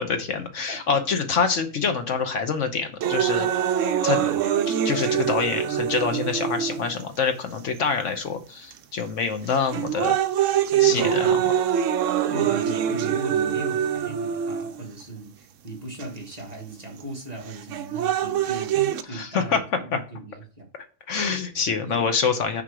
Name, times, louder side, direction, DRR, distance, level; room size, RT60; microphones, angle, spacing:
voice 1, 0.0-3.5 4.0-4.2 4.7-10.2 10.8-11.3 19.1-19.6 19.9-20.0 21.1-22.6, left 5 dB, 65° left, 1.2 m, -26 dB
voice 2, 0.7-1.0 4.2-4.5 10.9-11.4 12.3-20.7 21.8-22.0, right 2 dB, 30° right, 1.6 m, -37 dB
sound 1, 3.0-7.0 7.8-7.9 8.7-9.0 9.5-15.0 16.0-16.1 17.5-19.0, right 9 dB, 70° right, 0.9 m, -24 dB
6.0 x 4.6 x 4.8 m
omnidirectional pair, 1.4 m